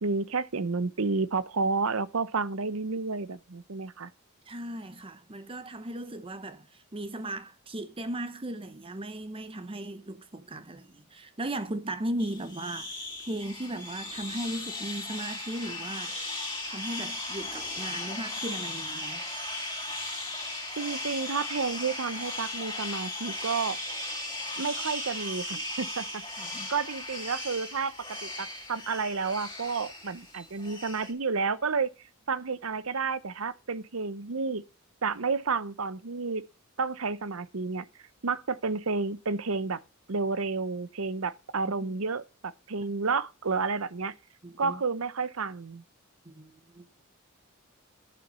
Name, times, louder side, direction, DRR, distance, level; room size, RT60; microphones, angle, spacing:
voice 1, 0.0-4.1 20.8-23.8 24.6-26.1 26.4-27.9 28.2-31.9 32.3-34.6 35.0-36.4 36.8-37.9 38.2-39.8 40.1-44.1 44.6-45.8, right 4 dB, 70° right, 0.8 m, -31 dB
voice 2, 4.5-16.4 16.7-19.2 26.4-26.7 41.6-41.7 44.4-44.8 46.3-46.9, right 1 dB, 25° right, 0.8 m, -37 dB
sound 1, 12.2-31.1, left 2 dB, 20° left, 3.3 m, -37 dB
11.0 x 7.1 x 5.6 m
head